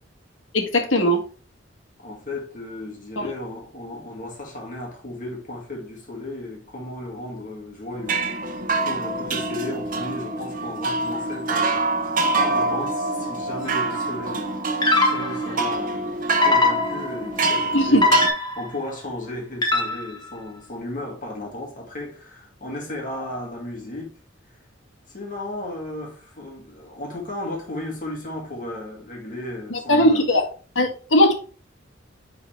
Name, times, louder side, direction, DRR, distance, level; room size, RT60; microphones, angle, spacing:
voice 1, 0.5-1.2 3.2-3.3 17.7-18.0 29.7-30.4 30.7-31.3, left 1 dB, 80° left, 1.6 m, -19 dB
voice 2, 2.0-8.6 8.8-16.0 16.4-18.2 18.5-24.2 25.1-30.3, left 1 dB, 45° left, 2.0 m, -35 dB
sound 1, 8.0-18.3, right 3 dB, 45° right, 1.0 m, -25 dB
sound 2, 13.7-14.0 14.8-15.5 16.4-17.3 18.0-18.8 19.6-20.3, left 3 dB, 25° left, 1.4 m, -21 dB
9.6 x 4.0 x 3.3 m
head